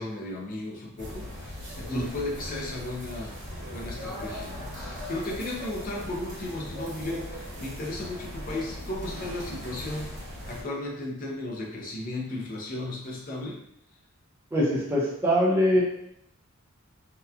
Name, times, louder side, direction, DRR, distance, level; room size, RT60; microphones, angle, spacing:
voice 1, 0.0-3.4 3.7-10.1 10.5-13.6, left 2 dB, 40° left, -2 dB, 0.5 m, -35 dB
sound 1, 1.0-10.6, equal, 55° right, 1.0 m, -39 dB
voice 2, 14.5-15.8, equal, 10° right, -6 dB, 0.6 m, -23 dB
2.8 x 2.2 x 2.4 m, 0.75 s
head